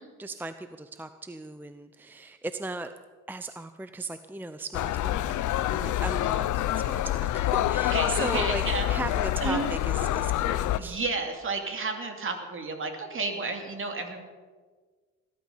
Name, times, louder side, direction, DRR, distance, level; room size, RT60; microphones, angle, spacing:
voice 1, 0.2-2.9 3.3-11.1, right 2 dB, 5° right, 10 dB, 0.6 m, -37 dB
sound 1, 4.7-10.8, left 13 dB, 80° left, 0.7 m, -27 dB
voice 2, 7.9-8.9 9.4-9.7 10.7-14.2, right 3 dB, 45° right, 4 dB, 2.8 m, -31 dB
19.0 x 12.0 x 5.7 m, 1.4 s
cardioid pair, 90°, 30 cm